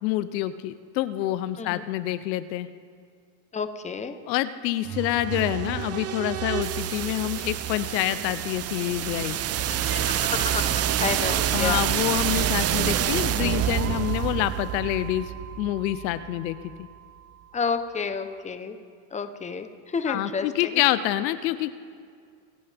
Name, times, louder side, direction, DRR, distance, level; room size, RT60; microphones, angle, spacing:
voice 1, 0.0-2.7 4.3-9.4 11.5-16.6 20.1-21.7, left 14 dB, 85° left, 14 dB, 0.8 m, -27 dB
voice 2, 3.5-4.2 9.7-11.8 17.5-18.8 19.1-20.7, left 5 dB, 15° left, 9 dB, 0.9 m, -30 dB
sound 1, 4.8-16.7, right 11 dB, 30° right, 0.6 m, -27 dB
24.5 x 11.0 x 3.5 m, 2.2 s
supercardioid pair, 105°, 49 cm